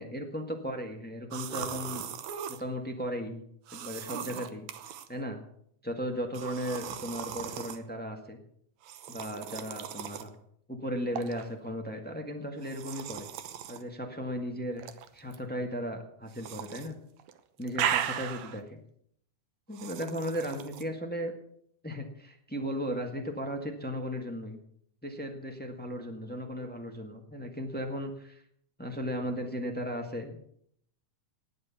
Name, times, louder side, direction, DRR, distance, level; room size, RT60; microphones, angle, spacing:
voice 1, 0.0-2.0 2.5-3.4 3.7-4.6 5.1-5.4 5.8-8.4 9.1-10.3 10.7-13.3 13.7-14.8 15.1-17.0 17.6-18.8 19.7-21.3 21.8-24.6 25.0-28.4 28.8-30.4, equal, 10° left, 3 dB, 0.5 m, -36 dB
sound 1, 1.3-2.6 3.7-5.1 6.3-7.8 8.8-10.3 11.1-11.4 12.6-13.8 14.8-15.4 16.3-16.9 17.2-18.6 19.7-20.8, right 10 dB, 70° right, 2.1 m, -37 dB
19.0 x 7.9 x 7.0 m, 0.67 s
omnidirectional pair, 3.7 m